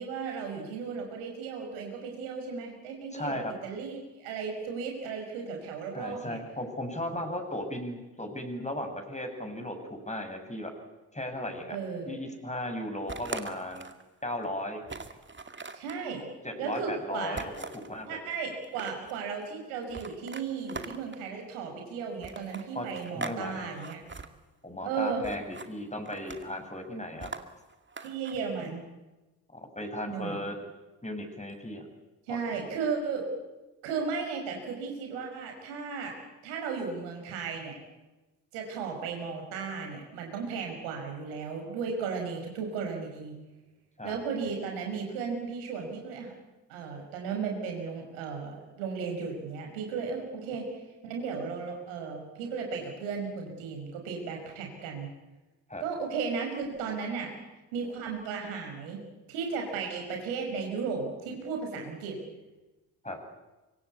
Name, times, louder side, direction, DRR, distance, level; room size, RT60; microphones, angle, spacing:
voice 1, 0.0-6.4 11.7-12.2 15.7-16.3 16.6-17.4 18.1-24.0 24.8-25.2 28.0-28.8 30.1-30.4 32.3-33.3 33.8-36.2 36.4-37.7 38.5-43.4 44.0-46.3 46.7-50.7 51.0-55.1 55.8-57.3 57.7-59.0 59.3-62.2, right 5 dB, 75° right, 2 dB, 5.8 m, -35 dB
voice 2, 3.1-3.5 5.9-10.7 11.1-11.8 12.1-13.9 14.2-14.8 16.4-18.2 22.7-22.9 23.1-23.7 24.6-27.3 29.5-30.6 31.0-31.9 32.3-32.4 44.0-44.2 55.7-55.8 63.0-63.2, left 1 dB, 15° left, 5 dB, 7.1 m, -36 dB
sound 1, 13.1-14.0 14.4-14.5 14.9-16.0 17.4-17.9 18.5-19.2 19.9-21.3 22.2-23.4 23.7-24.3 25.2-25.7 26.1-26.6 27.2-28.4, right 4 dB, 25° right, 2.3 m, -41 dB
25.0 x 23.5 x 8.5 m, 1.1 s
figure-of-eight pair, 45°, 48 cm